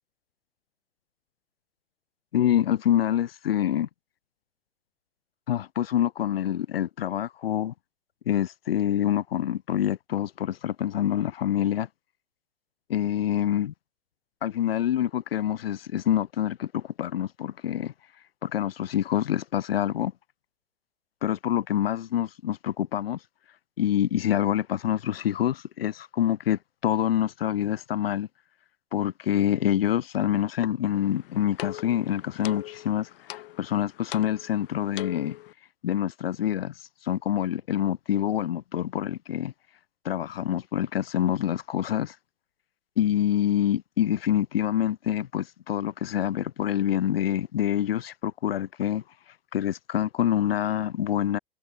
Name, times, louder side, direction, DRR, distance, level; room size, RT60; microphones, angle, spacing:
voice 1, 2.3-3.9 5.5-7.7 8.3-11.9 12.9-13.7 14.4-17.9 18.4-20.1 21.2-23.2 23.8-28.3 28.9-35.3 35.8-36.7 37.0-39.5 40.0-42.1 43.0-49.0 49.5-51.4, left 11 dB, 80° left, 0.9 m, -26 dB
sound 1, 30.9-35.5, left 17 dB, 60° left, 2.6 m, -41 dB
hypercardioid pair, 100°, 30 cm